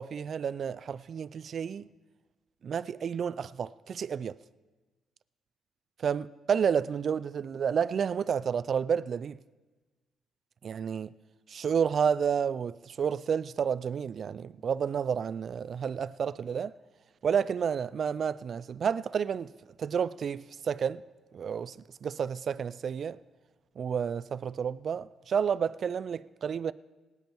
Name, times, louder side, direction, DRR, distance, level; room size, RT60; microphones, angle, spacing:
voice 1, 0.0-1.9 2.6-4.4 6.0-9.4 10.6-11.1 11.5-16.7 17.2-19.5 19.8-21.0 21.3-23.2 23.8-26.7, right 7 dB, 55° right, 0.3 m, -30 dB
18.5 x 9.3 x 4.5 m
cardioid pair, 90°, 0 cm